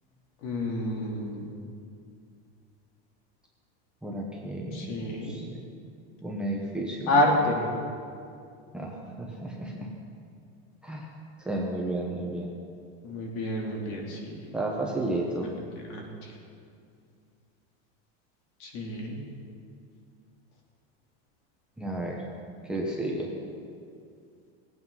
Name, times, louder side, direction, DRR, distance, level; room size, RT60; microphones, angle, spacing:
voice 1, 0.4-1.4 4.7-5.4 7.1-7.7 13.0-14.3 15.9-16.3 18.6-19.2, left 1 dB, 55° left, -1 dB, 2.9 m, -28 dB
voice 2, 4.0-4.9 5.2-5.6 6.2-7.1 8.7-9.9 10.8-11.1 11.4-12.5 14.5-15.5 21.8-22.2 22.7-23.3, right 1 dB, 5° right, -2 dB, 0.9 m, -32 dB
18.5 x 8.6 x 5.6 m, 2.4 s
supercardioid pair, 170°, 33 cm